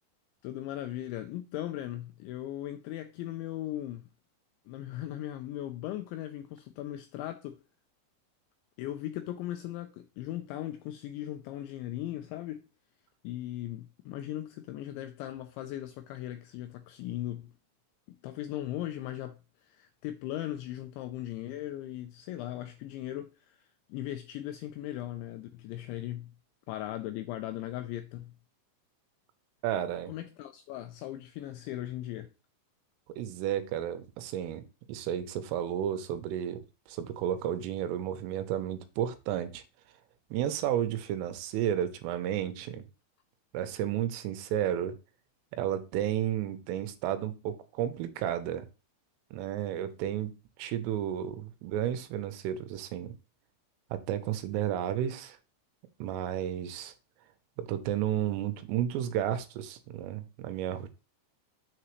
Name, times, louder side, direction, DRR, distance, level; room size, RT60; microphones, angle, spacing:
voice 1, 0.4-4.1 4.7-7.6 8.8-12.7 13.2-17.5 18.1-26.3 26.7-28.3 30.1-32.3, left 13 dB, 85° left, 2.6 m, -38 dB
voice 2, 29.6-30.1 33.2-34.6 34.9-36.6 36.9-39.6 40.3-42.8 43.5-44.9 45.5-48.7 49.3-50.3 50.6-53.1 53.9-55.4 56.0-56.9 57.6-60.9, right 11 dB, 85° right, 3.4 m, -32 dB
7.3 x 6.9 x 3.1 m
omnidirectional pair, 5.8 m